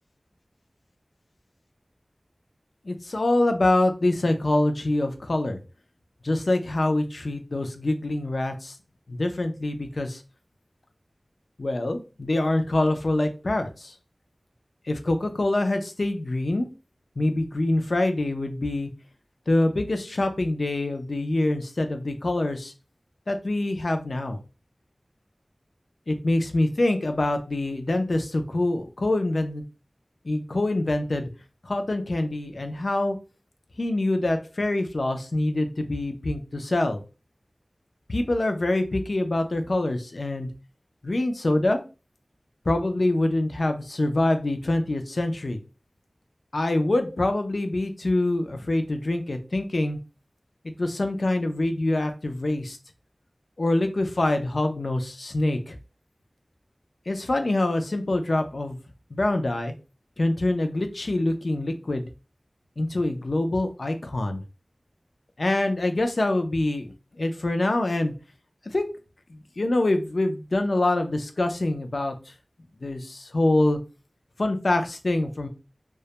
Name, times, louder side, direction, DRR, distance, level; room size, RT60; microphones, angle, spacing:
voice 1, 2.9-5.6 6.2-8.8 9.1-10.2 11.6-13.9 14.9-16.7 17.2-18.9 19.5-22.7 23.3-24.4 26.1-29.6 30.2-31.3 31.6-33.2 33.8-37.0 38.1-40.5 41.0-41.8 42.7-45.6 46.5-50.0 50.8-52.8 53.6-55.8 57.1-58.8 59.1-59.7 60.2-62.1 62.8-64.4 65.4-68.1 68.7-68.9 69.3-72.1 72.8-73.8 74.4-75.5, left 2 dB, 75° left, 6 dB, 0.4 m, -25 dB
2.2 x 2.0 x 2.8 m, 0.32 s
wide cardioid pair, 50°, 0 cm